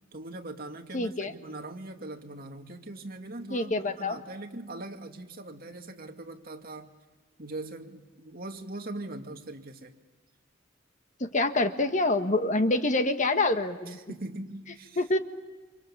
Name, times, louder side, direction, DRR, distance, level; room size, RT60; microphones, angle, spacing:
voice 1, 0.1-6.9 7.4-9.9 13.9-15.0, right 2 dB, 50° right, 3 dB, 2.3 m, -41 dB
voice 2, 0.9-1.3 3.5-4.2 11.2-14.0 15.0-15.2, left 2 dB, 40° left, 7 dB, 1.5 m, -26 dB
29.0 x 27.5 x 7.2 m, 1.2 s
head